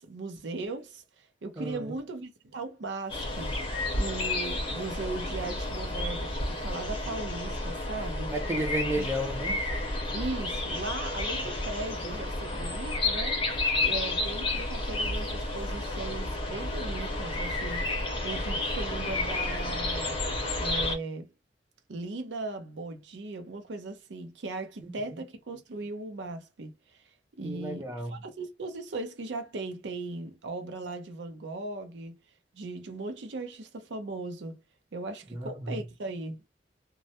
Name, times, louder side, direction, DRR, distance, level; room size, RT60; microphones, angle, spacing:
voice 1, 0.0-3.6 3.9-8.3 9.0-9.1 10.1-13.5 13.8-17.9 18.2-20.2 20.6-21.3 21.9-27.0 27.4-32.2 32.5-34.6 34.9-36.4, right 3 dB, 80° right, 0.5 m, -38 dB
voice 2, 1.6-2.0 8.3-9.6 24.8-25.2 27.4-28.2 35.3-35.8, right 1 dB, 15° right, 0.5 m, -33 dB
sound 1, 3.1-21.0, left 2 dB, 30° left, 0.6 m, -31 dB
2.2 x 2.0 x 2.7 m
head